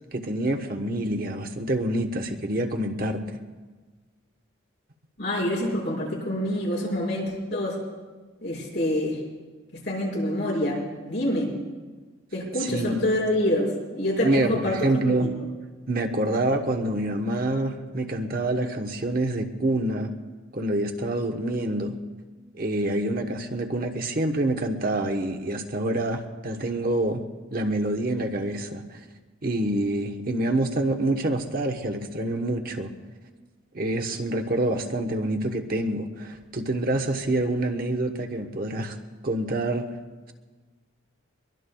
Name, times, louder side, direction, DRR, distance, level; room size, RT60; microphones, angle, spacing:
voice 1, 0.1-3.4 12.7-13.0 14.2-15.4 15.9-20.1 20.5-22.0 22.5-27.2 27.5-29.0 29.4-32.9 33.7-39.0 39.2-39.9, right 1 dB, 45° right, 4 dB, 1.0 m, -26 dB
voice 2, 5.2-7.8 8.4-9.2 9.7-11.5 12.3-15.5, left 1 dB, 60° left, -3 dB, 5.8 m, -27 dB
23.0 x 22.5 x 2.3 m, 1.3 s
head